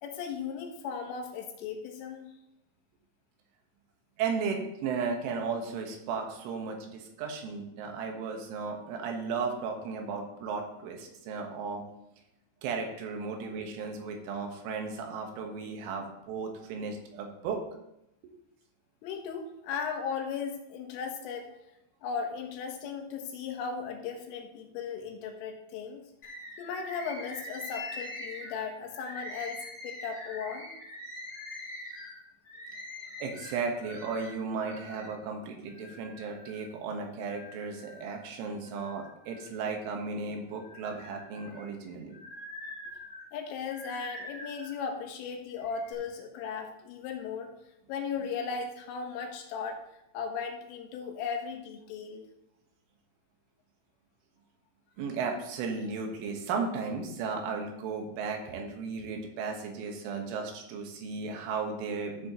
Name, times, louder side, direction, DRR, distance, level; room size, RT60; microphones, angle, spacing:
voice 1, 0.0-2.3 19.0-21.5 22.0-26.0 26.6-29.6 29.8-30.7 43.3-47.5 47.9-52.2, left 6 dB, 85° left, 4 dB, 3.7 m, -37 dB
voice 2, 4.2-11.8 12.6-17.6 33.2-42.2 55.0-62.3, right 5 dB, 75° right, 3 dB, 3.7 m, -35 dB
Bird, 26.2-35.1 35.7-36.7 37.2-38.2 38.6-40.0 40.5-44.8 45.5-45.9, left 1 dB, 25° left, 3.1 m, -44 dB
14.0 x 7.5 x 3.0 m, 0.85 s
omnidirectional pair, 5.8 m